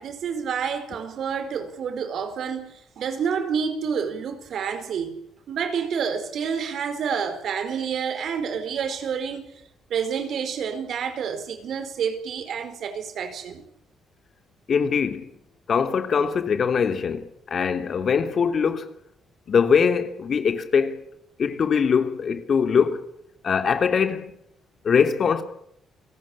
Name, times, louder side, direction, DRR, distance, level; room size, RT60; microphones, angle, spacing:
voice 1, 0.0-5.2 5.5-9.5 9.9-13.6, right 7 dB, 65° right, 4.7 m, -28 dB
voice 2, 14.7-15.3 15.7-18.8 19.5-21.0 21.4-23.0 23.4-24.3 24.8-25.4, left 6 dB, 50° left, 3.2 m, -22 dB
29.5 x 18.5 x 8.7 m
cardioid pair, 90°, 0 cm